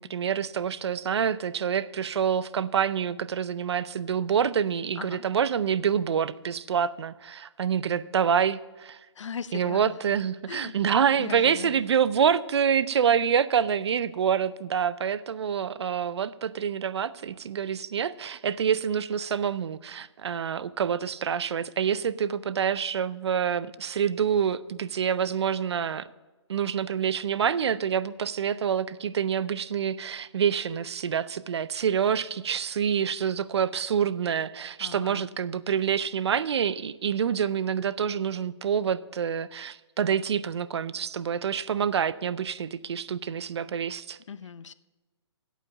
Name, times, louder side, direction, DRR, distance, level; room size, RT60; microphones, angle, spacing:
voice 1, 0.0-9.0 9.5-26.1 26.5-44.2, right 7 dB, 65° right, 17 dB, 0.5 m, -27 dB
voice 2, 9.1-10.1 10.5-10.7 11.2-11.8 34.8-35.3 44.3-44.7, left 6 dB, 90° left, 16 dB, 0.6 m, -38 dB
8.6 x 8.2 x 7.1 m, 1.2 s
hypercardioid pair, 160°, 15 cm